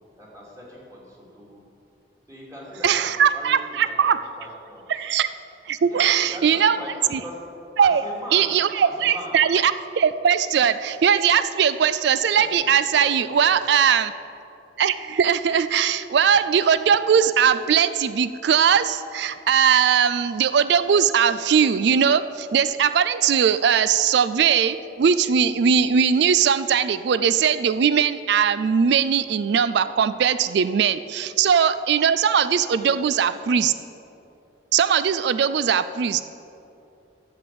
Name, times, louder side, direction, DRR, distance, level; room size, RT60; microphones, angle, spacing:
voice 1, 0.2-1.6 2.3-2.9 3.3-5.0 5.9-6.0 6.3-7.4 7.8-8.5 8.8-9.4 12.4-13.6 32.8-33.0 33.3-33.4, equal, 15° right, -5 dB, 2.8 m, -40 dB
voice 2, 2.8-4.2 4.9-5.3 5.7-6.8 7.1-7.2 7.8-8.0 8.3-14.1 14.8-33.7 34.7-36.2, right 7 dB, 60° right, 13 dB, 0.3 m, -20 dB
10.5 x 8.0 x 7.7 m, 2.8 s
head